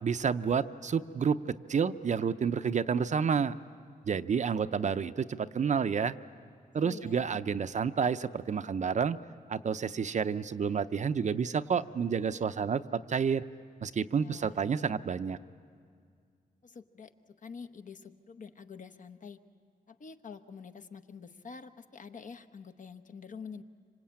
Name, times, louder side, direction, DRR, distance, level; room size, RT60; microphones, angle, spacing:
voice 1, 0.0-1.4 1.7-3.5 4.1-6.1 6.7-9.2 9.5-13.4 13.8-15.4, right 6 dB, 50° right, 11 dB, 0.6 m, -29 dB
voice 2, 6.8-7.2 14.2-14.6 16.6-19.4 19.9-23.6, left 5 dB, 55° left, 8 dB, 1.0 m, -47 dB
26.0 x 26.0 x 8.7 m, 2.1 s
wide cardioid pair, 120°, 16 cm